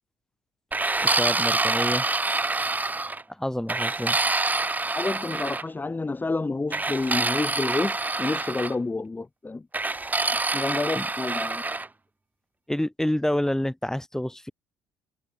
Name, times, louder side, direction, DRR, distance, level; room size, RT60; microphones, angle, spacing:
sound 1, 0.7-3.2 3.7-5.6 6.7-8.7 9.7-11.9, right 3 dB, 20° right, 3.3 m, -26 dB
voice 1, 1.0-2.1 3.3-4.2 10.9-11.1 12.7-14.5, left 1 dB, 5° left, 4.8 m, -28 dB
voice 2, 4.9-9.7 10.5-11.6, left 3 dB, 20° left, 2.9 m, -29 dB
hypercardioid pair, 55°, 9 cm